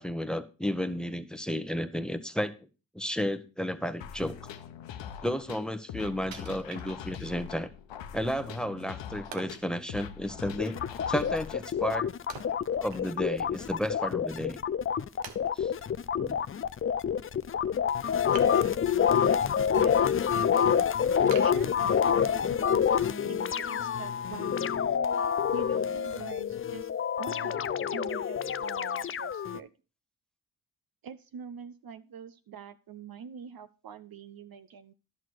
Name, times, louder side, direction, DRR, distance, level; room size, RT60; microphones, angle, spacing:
voice 1, 0.0-2.5 2.9-4.4 5.2-7.7 8.1-10.8 11.1-12.1 12.8-14.6 15.5-15.7 16.2-16.4, equal, ahead, 11 dB, 1.1 m, -32 dB
sound 1, 4.0-12.0, left 8 dB, 80° left, 0.9 m, -43 dB
Wood, 6.3-7.4 7.9-8.0 9.3-9.7 12.3-13.4 13.7-13.8 14.5-14.6 15.2-15.9 18.3-19.1 19.5-20.0 20.4-20.5 21.3-22.3 22.8-22.9, right 7 dB, 85° right, 1.1 m, -46 dB
sound 2, 10.6-29.6, left 8 dB, 30° left, 0.5 m, -27 dB
voice 2, 19.7-20.9 21.4-24.8 25.5-26.9 27.2-27.6 27.9-29.7 31.0-34.9, right 7 dB, 55° right, 11 dB, 0.7 m, -45 dB
11.0 x 6.4 x 4.7 m, 0.33 s
supercardioid pair, 50°, 44 cm